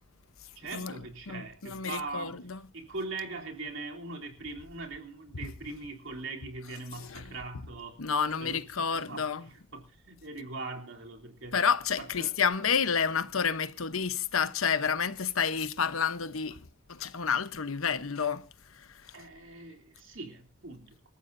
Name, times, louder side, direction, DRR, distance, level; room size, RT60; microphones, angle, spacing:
voice 1, 0.5-2.5 2.7-8.0 8.4-8.6 9.1-11.6 12.0-12.3 19.1-21.1, right 3 dB, 65° right, 3.4 m, -41 dB
voice 2, 1.3-2.6 7.0-7.3 8.0-9.4 11.5-16.6 16.9-18.4 18.8-19.1, left 6 dB, 85° left, 1.0 m, -30 dB
26.5 x 14.0 x 2.7 m
head